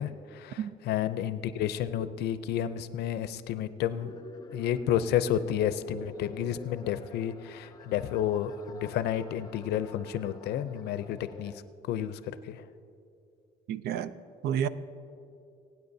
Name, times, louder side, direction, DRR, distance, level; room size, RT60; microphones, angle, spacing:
voice 1, 0.0-4.1 4.5-11.5 11.9-12.6, left 10 dB, 75° left, 13 dB, 0.5 m, -31 dB
sound 1, 3.9-11.6, left 4 dB, 25° left, 0.6 m, -47 dB
voice 2, 13.7-14.1 14.4-14.7, right 9 dB, 75° right, 14 dB, 0.5 m, -30 dB
23.5 x 9.2 x 2.7 m, 2.6 s
cardioid pair, 110°, 17 cm